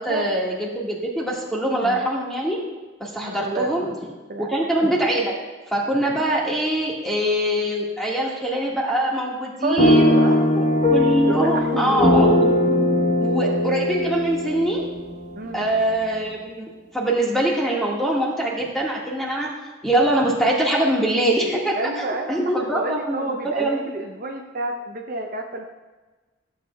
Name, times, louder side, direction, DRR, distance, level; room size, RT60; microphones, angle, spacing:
voice 1, 0.0-2.6 3.0-3.9 4.4-5.4 5.7-10.2 10.5-12.5 13.2-14.8 15.5-19.5 19.8-23.8, right 1 dB, ahead, -4 dB, 1.7 m, -23 dB
voice 2, 3.2-3.7 4.3-4.5 9.6-10.8 11.3-12.1 15.4-15.7 21.7-25.6, right 2 dB, 45° right, 2 dB, 0.7 m, -29 dB
sound 1, 9.8-15.8, left 1 dB, 40° left, 1.2 m, -20 dB
14.0 x 8.1 x 2.3 m, 1.3 s
head